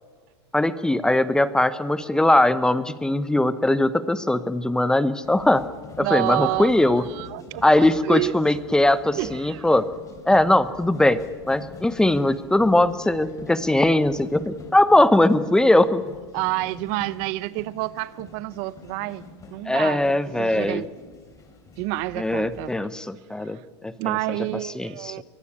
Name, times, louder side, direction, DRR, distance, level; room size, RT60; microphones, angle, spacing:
voice 1, 0.5-5.6 6.0-7.0 7.6-9.8 10.3-11.2 11.5-16.0 19.7-20.8 22.2-24.2 24.7-25.1, left 1 dB, 5° left, 15 dB, 0.9 m, -20 dB
sound 1, 5.2-22.7, left 3 dB, 20° left, 4.0 m, -45 dB
voice 2, 6.0-8.3 9.2-9.7 16.3-19.2 19.5-20.0 20.4-20.9 21.8-22.7 23.4-23.6 24.0-25.2, right 19 dB, 50° right, 18 dB, 0.7 m, -29 dB
23.0 x 17.0 x 8.7 m, 1.5 s
hypercardioid pair, 125°, 15 cm